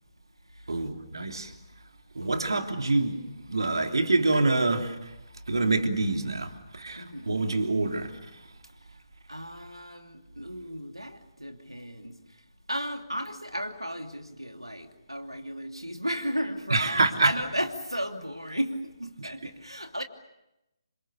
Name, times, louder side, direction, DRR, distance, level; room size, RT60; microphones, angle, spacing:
voice 1, 0.7-1.5 2.1-5.1 5.5-8.1 16.7-17.3, right 2 dB, 60° right, 3.1 m, -26 dB
voice 2, 2.2-2.7 7.0-7.4 9.3-12.2 12.7-20.0, equal, 90° right, 2.8 m, -35 dB
28.5 x 26.5 x 6.9 m
figure-of-eight pair, 145°, 3 cm